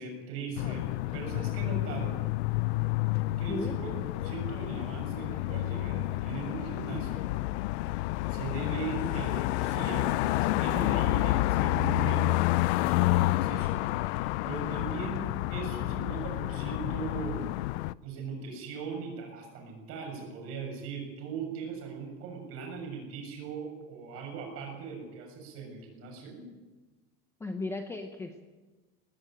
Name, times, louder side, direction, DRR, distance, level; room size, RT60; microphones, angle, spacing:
voice 1, 0.0-2.3 3.4-7.3 8.3-17.5 18.0-26.5, right 5 dB, 45° right, 2 dB, 7.2 m, -39 dB
sound 1, 0.6-17.9, left 18 dB, 80° left, 0.6 m, -29 dB
voice 2, 27.4-28.4, left 2 dB, 10° left, 6 dB, 0.8 m, -36 dB
18.5 x 17.0 x 8.8 m, 1.2 s
cardioid pair, 175°, 33 cm